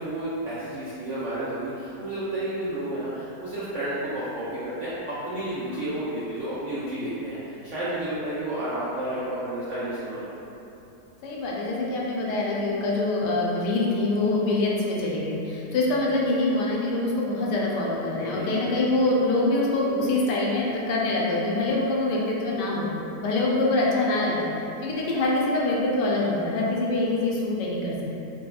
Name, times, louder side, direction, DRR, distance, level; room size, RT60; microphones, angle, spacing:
voice 1, 0.0-10.3 18.2-18.7, right 1 dB, 75° right, -11 dB, 0.7 m, -31 dB
voice 2, 11.2-22.9 23.2-24.5 24.8-27.9, left 2 dB, 80° left, -4 dB, 1.2 m, -25 dB
4.2 x 2.3 x 2.3 m, 2.9 s
omnidirectional pair, 1.9 m